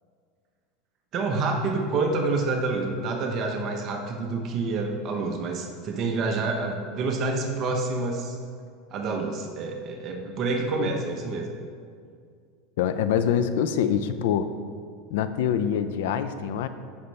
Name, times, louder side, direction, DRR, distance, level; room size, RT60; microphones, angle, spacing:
voice 1, 1.1-8.4 8.9-11.5, right 3 dB, 40° right, 2 dB, 0.9 m, -28 dB
voice 2, 12.8-14.5 15.1-16.7, left 8 dB, 80° left, 12 dB, 0.5 m, -25 dB
14.5 x 5.5 x 3.3 m, 2.2 s
supercardioid pair, 125°, 0 cm